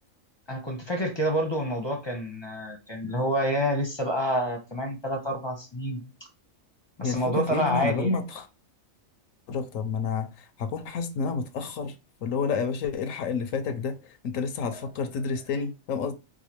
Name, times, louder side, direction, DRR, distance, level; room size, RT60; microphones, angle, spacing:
voice 1, 0.5-6.0 7.0-8.1, equal, 25° left, 0.7 m, -28 dB
voice 2, 7.0-8.5 9.5-12.0 12.2-16.1, left 5 dB, 75° left, 1.0 m, -30 dB
4.8 x 2.2 x 2.9 m
omnidirectional pair, 1.4 m